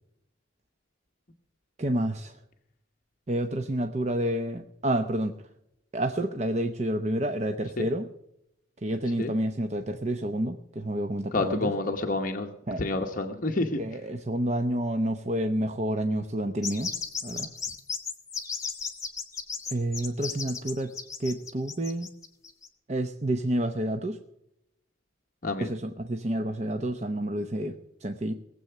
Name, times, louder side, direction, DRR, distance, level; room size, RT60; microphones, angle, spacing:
voice 1, 1.8-2.4 3.3-5.3 5.9-8.1 8.8-11.7 12.7-12.8 13.8-16.9 17.2-17.5 19.7-20.9 21.2-22.1 22.9-24.2 25.6-28.3, right 1 dB, 35° right, 6 dB, 0.8 m, -29 dB
voice 2, 11.3-12.5 12.8-13.8 25.4-25.7, left 2 dB, 45° left, 2 dB, 1.0 m, -28 dB
sound 1, 16.6-22.7, left 6 dB, 15° left, 1.6 m, -35 dB
19.0 x 7.8 x 6.7 m, 0.81 s
head